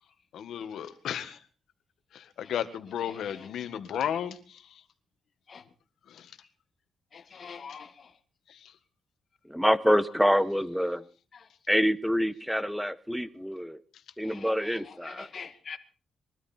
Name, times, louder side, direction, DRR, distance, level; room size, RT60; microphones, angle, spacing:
voice 1, 0.3-1.4 2.1-4.8 6.1-6.3 8.5-8.7, left 9 dB, 80° left, 1.7 m, -34 dB
voice 2, 7.1-8.1 9.9-10.0 11.3-11.5 14.2-15.8, left 6 dB, 50° left, 2.0 m, -44 dB
voice 3, 9.5-11.0 11.7-13.8 14.2-15.3, equal, ahead, 1.2 m, -26 dB
22.5 x 13.0 x 4.4 m
cardioid pair, 90°, 0 cm